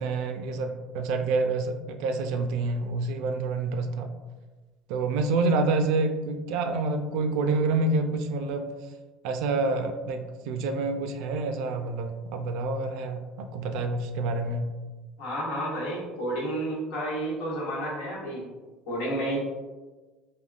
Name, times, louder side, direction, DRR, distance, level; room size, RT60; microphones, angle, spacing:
voice 1, 0.0-4.1 4.9-8.7 9.2-14.7, right 3 dB, 70° right, 7 dB, 0.3 m, -28 dB
voice 2, 15.2-18.4 18.9-19.4, right 1 dB, 85° left, -5 dB, 1.1 m, -31 dB
3.5 x 2.2 x 2.4 m, 1.3 s
cardioid pair, 135°, 0 cm